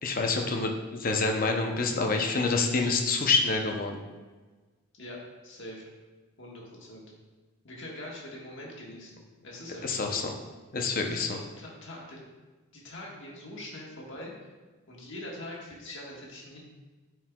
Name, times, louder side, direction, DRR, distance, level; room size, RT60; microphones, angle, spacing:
voice 1, 0.0-4.0 9.8-10.3 10.7-11.4, left 3 dB, 40° left, 3 dB, 0.6 m, -27 dB
voice 2, 4.9-5.8 6.4-7.1 7.6-10.2 11.0-12.2 12.7-14.5 14.9-16.6, left 1 dB, 55° left, -3 dB, 1.5 m, -43 dB
9.3 x 4.6 x 2.3 m, 1.3 s
head